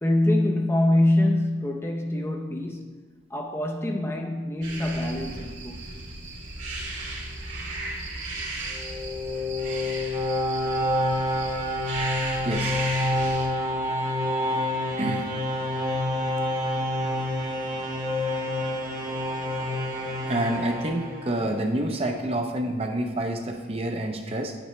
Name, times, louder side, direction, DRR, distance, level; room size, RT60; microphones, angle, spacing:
voice 1, 0.0-2.9 3.3-5.9, left 1 dB, 15° left, 0.6 m, -24 dB
sound 1, 4.6-13.5, right 2 dB, 70° right, 2.8 m, -35 dB
sound 2, 8.6-21.7, left 1 dB, 45° right, 1.1 m, -28 dB
voice 2, 12.4-12.8 15.0-15.3 20.3-24.5, right 1 dB, 30° right, 0.7 m, -28 dB
9.4 x 8.9 x 3.2 m
head